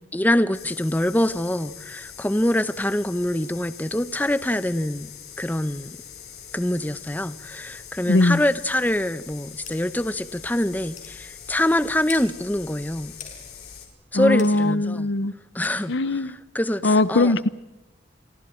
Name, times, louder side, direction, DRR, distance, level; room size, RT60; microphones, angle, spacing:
voice 1, 0.1-5.1 5.4-5.9 6.5-13.1 14.1-15.1 15.5-17.3, left 1 dB, 10° left, 0.8 m, -25 dB
sound 1, 0.5-13.9, left 8 dB, 60° left, 4.3 m, -43 dB
voice 2, 8.1-8.4 14.1-15.3 15.9-16.3 16.8-17.5, left 2 dB, 90° left, 0.9 m, -20 dB
sound 2, 9.7-9.8 10.3-10.4 11.0-11.1 12.1-12.3 13.2-13.4 14.4-14.5 15.6-15.8, left 8 dB, 40° left, 5.6 m, -38 dB
29.5 x 23.5 x 4.4 m
head